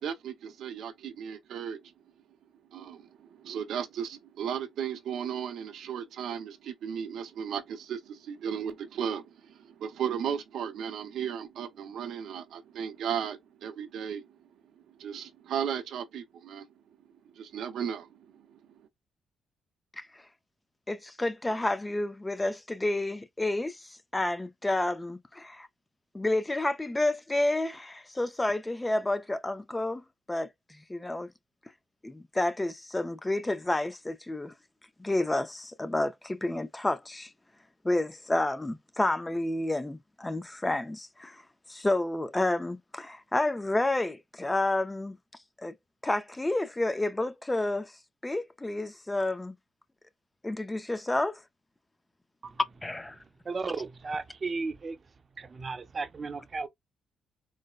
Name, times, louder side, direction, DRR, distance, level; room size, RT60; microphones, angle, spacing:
voice 1, 0.0-1.9 2.7-14.4 14.9-16.7 17.3-18.8, right 8 dB, 75° right, 0.6 m, -35 dB
voice 2, 20.9-25.7 26.1-30.0 30.3-31.3 32.0-34.5 35.0-37.3 37.8-41.4 41.7-45.2 45.6-45.7 46.0-47.9 48.2-49.6 50.4-51.4 52.8-53.2, left 2 dB, 15° left, 0.4 m, -30 dB
voice 3, 53.2-55.0 55.4-56.7, right 4 dB, 35° right, 0.5 m, -35 dB
3.9 x 2.1 x 2.3 m
cardioid pair, 90°, 0 cm